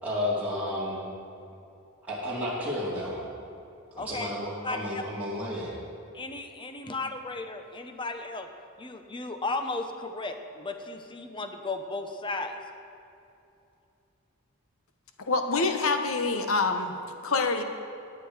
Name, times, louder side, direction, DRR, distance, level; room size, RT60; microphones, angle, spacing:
voice 1, 0.0-1.1 2.0-3.3 3.9-5.8, left 1 dB, 5° right, -9 dB, 2.6 m, -32 dB
voice 2, 4.0-4.3 4.6-5.0 6.1-8.5 8.8-12.6, left 2 dB, 25° left, 6 dB, 0.8 m, -35 dB
voice 3, 15.3-16.9 17.2-17.6, left 3 dB, 75° left, 6 dB, 1.0 m, -26 dB
17.0 x 9.7 x 4.9 m, 2.7 s
head